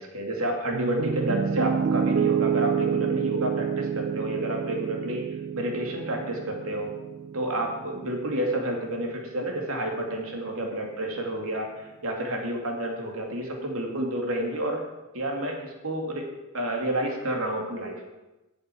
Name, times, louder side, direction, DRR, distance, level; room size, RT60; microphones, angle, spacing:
voice 1, 0.0-5.3 5.5-6.9 7.3-14.8 15.1-16.3 16.5-18.1, right 1 dB, 70° right, 1 dB, 2.7 m, -30 dB
Piano, 0.7-8.8, right 7 dB, 50° right, 0.3 m, -29 dB
8.0 x 7.9 x 8.6 m, 1.0 s
head